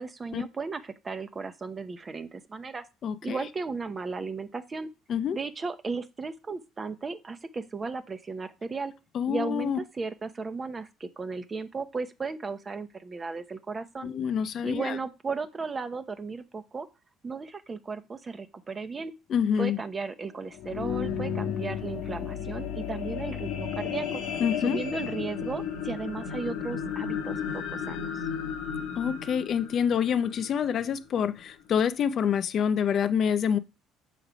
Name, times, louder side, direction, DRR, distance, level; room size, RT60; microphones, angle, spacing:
voice 1, 0.0-2.8 3.2-4.9 5.3-8.9 9.3-14.1 14.6-16.9 17.2-19.1 19.6-24.2 24.6-28.2, right 4 dB, 25° right, 0.8 m, -35 dB
voice 2, 3.0-3.4 5.1-5.4 9.1-9.8 14.0-15.0 19.3-19.8 24.4-24.8 29.0-33.6, left 8 dB, 50° left, 0.5 m, -27 dB
sound 1, 20.4-30.9 31.5-31.6, left 8 dB, 70° left, 1.0 m, -33 dB
6.8 x 3.1 x 5.0 m
cardioid pair, 105°, 0 cm